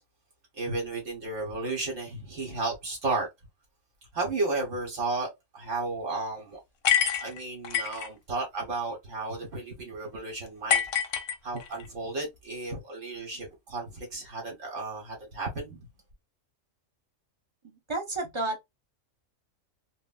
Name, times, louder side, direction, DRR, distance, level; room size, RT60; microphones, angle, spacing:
voice 1, 0.5-3.3 4.1-6.6 7.2-10.8 11.4-15.9, right 3 dB, 70° right, 1.4 m, -33 dB
sound 1, 6.8-8.1 10.7-11.9, left 8 dB, 60° left, 0.7 m, -26 dB
voice 2, 17.9-18.6, right 2 dB, 30° right, 0.6 m, -31 dB
3.3 x 2.2 x 2.3 m
omnidirectional pair, 1.3 m